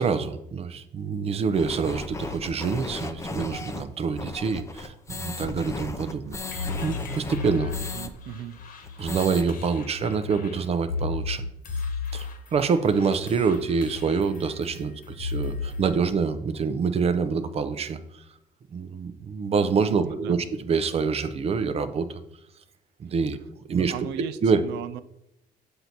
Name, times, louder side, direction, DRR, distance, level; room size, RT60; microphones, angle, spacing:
voice 1, 0.0-7.7 9.0-11.4 12.1-18.2 18.7-22.2 23.0-23.4 23.6-23.9 24.4-24.6, right 5 dB, 35° right, 11 dB, 0.6 m, -26 dB
sound 1, 1.5-8.1 8.4-8.5 8.8-9.4, left 3 dB, 15° left, 0.5 m, -35 dB
sound 2, 6.5-15.9, left 4 dB, 55° left, 1.1 m, -35 dB
voice 2, 7.8-8.6 9.0-9.1 19.9-20.4 23.7-25.0, right 11 dB, 85° right, 14 dB, 0.5 m, -37 dB
7.8 x 2.7 x 5.9 m, 0.83 s
cardioid pair, 110°, 17 cm